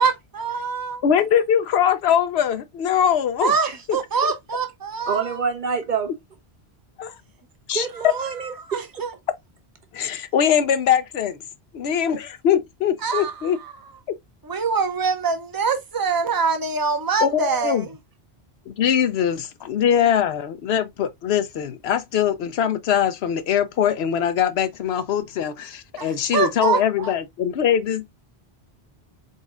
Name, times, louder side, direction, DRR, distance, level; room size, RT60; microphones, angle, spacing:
voice 1, 0.0-1.0 3.4-5.3 8.7-9.1 13.0-13.3 14.4-17.9 26.0-27.1, right 5 dB, 25° right, 0.7 m, -24 dB
voice 2, 1.0-3.5 3.9-4.0 7.0-7.2 7.7-7.9 9.9-11.4 11.7-13.6 14.1-14.2 17.2-17.9 18.7-28.1, left 9 dB, 80° left, 0.9 m, -22 dB
voice 3, 5.1-6.1 7.7-8.5 8.9-9.0, right 6 dB, 50° right, 1.0 m, -26 dB
4.0 x 4.0 x 2.4 m
omnidirectional pair, 1.1 m